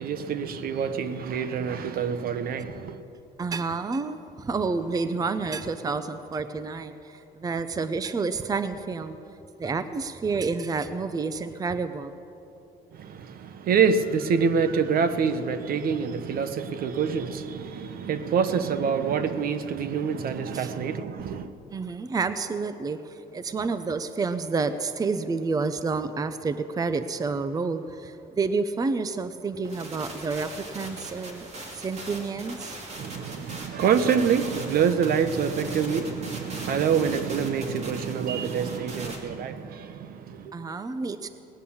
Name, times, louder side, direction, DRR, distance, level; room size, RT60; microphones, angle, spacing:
voice 1, 0.0-3.0 12.9-21.5 32.9-40.5, right 6 dB, 60° right, 1.0 m, -26 dB
voice 2, 3.4-9.2 9.6-12.1 20.5-20.7 21.7-31.5 31.8-32.8 40.5-41.3, right 4 dB, 20° right, 0.6 m, -29 dB
sound 1, 29.6-39.2, right 2 dB, 40° right, 2.6 m, -40 dB
18.5 x 10.5 x 7.1 m
cardioid pair, 110°, 17 cm